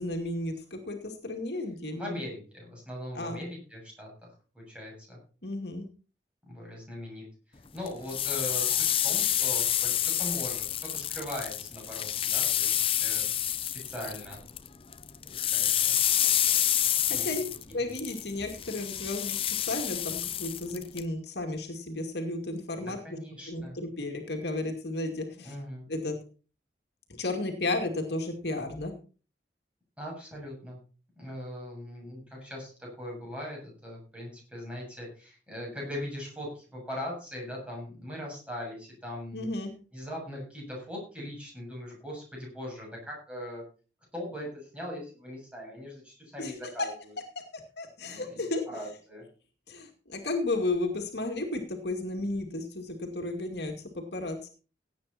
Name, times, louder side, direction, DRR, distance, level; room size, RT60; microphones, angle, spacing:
voice 1, 0.0-2.2 3.2-3.4 5.4-5.9 17.1-17.4 17.7-23.2 23.5-25.5 25.9-26.2 27.2-28.9 39.3-39.7 46.4-46.5 47.8-48.6 49.7-54.5, left 2 dB, 65° left, 3 dB, 2.4 m, -33 dB
voice 2, 1.9-4.1 4.5-5.2 6.5-7.2 7.7-13.3 13.6-14.4 15.3-16.0 17.1-17.4 17.7-17.8 22.8-23.8 25.3-25.9 30.0-30.8 31.2-39.5 39.9-43.6 44.1-47.2 48.0-48.4 48.7-49.2, left 1 dB, 5° right, -3 dB, 7.4 m, -40 dB
sound 1, 7.9-14.7 14.9-21.0, left 11 dB, 30° left, 0.6 m, -28 dB
17.0 x 8.9 x 4.3 m, 0.37 s
head